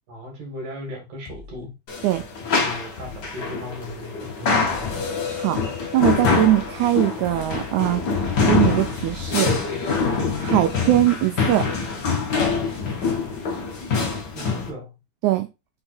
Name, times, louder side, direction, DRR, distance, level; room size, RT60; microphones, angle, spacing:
voice 1, 0.1-1.7 2.5-5.1 14.3-15.0, left 2 dB, 60° right, 3.1 m, -37 dB
sound 1, 1.2-1.7 2.1-2.5 3.0-3.4 3.8-4.1 4.7-5.1 5.5-5.9 6.4-6.8 7.2-7.7 8.1-8.5 9.0-9.4, left 4 dB, 65° left, 2.0 m, -43 dB
sound 2, 1.9-14.7, left 4 dB, 85° left, 0.9 m, -25 dB
voice 2, 5.9-8.1 8.4-9.5 10.4-11.7 15.2-15.5, right 14 dB, 90° right, 1.7 m, -21 dB
5.5 x 3.9 x 4.3 m
omnidirectional pair, 4.2 m